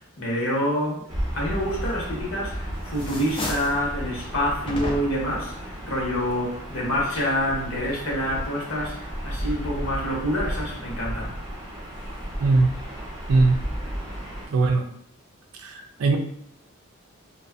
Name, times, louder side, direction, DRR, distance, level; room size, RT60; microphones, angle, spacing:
voice 1, 0.2-11.3, equal, 70° left, -4 dB, 1.0 m, -27 dB
Gull seagull / Ocean, 1.1-14.5, equal, 15° right, 0.7 m, -33 dB
sound 1, 2.1-2.5 2.9-3.8 4.7-5.3, left 1 dB, 25° left, 0.4 m, -32 dB
voice 2, 12.4-12.7 13.3-13.6 14.5-14.9 15.6-16.2, right 3 dB, 80° right, 4 dB, 0.4 m, -20 dB
2.6 x 2.3 x 2.4 m, 0.69 s
head